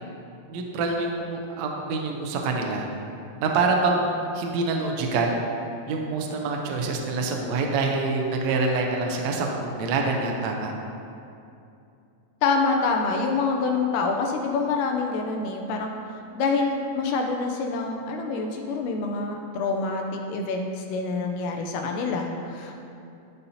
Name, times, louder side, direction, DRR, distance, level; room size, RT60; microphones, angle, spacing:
voice 1, 0.5-2.9 3.4-5.4 5.9-10.7, right 3 dB, 75° right, 1 dB, 1.6 m, -26 dB
voice 2, 12.4-22.7, left 4 dB, 80° left, 2 dB, 2.1 m, -26 dB
12.5 x 5.4 x 2.7 m, 2.6 s
omnidirectional pair, 3.8 m